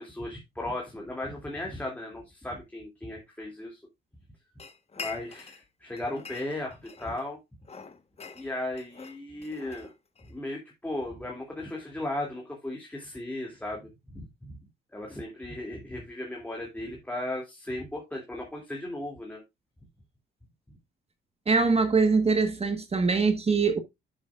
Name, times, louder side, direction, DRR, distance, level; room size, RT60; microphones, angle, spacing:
voice 1, 0.0-3.8 5.0-7.4 8.3-9.9 10.2-14.3 14.9-19.4 20.7-20.8, left 1 dB, 10° left, 2.7 m, -36 dB
sound 1, 4.6-5.7 6.0-7.3 7.6-10.3, left 5 dB, 30° left, 1.3 m, -44 dB
voice 2, 21.5-23.8, right 4 dB, 30° right, 1.4 m, -23 dB
10.5 x 7.2 x 2.5 m
cardioid pair, 90°, 20 cm